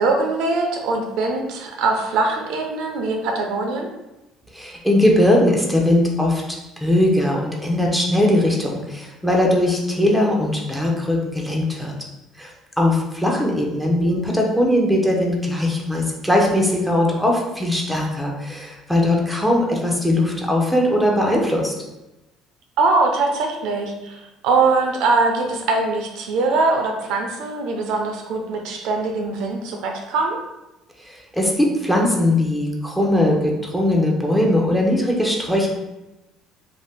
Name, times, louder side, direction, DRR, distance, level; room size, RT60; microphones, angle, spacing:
voice 1, 0.0-3.9 22.8-30.4, right 3 dB, 75° right, 3 dB, 0.5 m, -22 dB
voice 2, 4.5-6.4 6.8-11.9 12.4-12.5 12.8-21.7 31.0-35.7, left 1 dB, 5° left, -2 dB, 0.6 m, -20 dB
2.6 x 2.1 x 3.5 m, 0.98 s
cardioid pair, 100°, 0 cm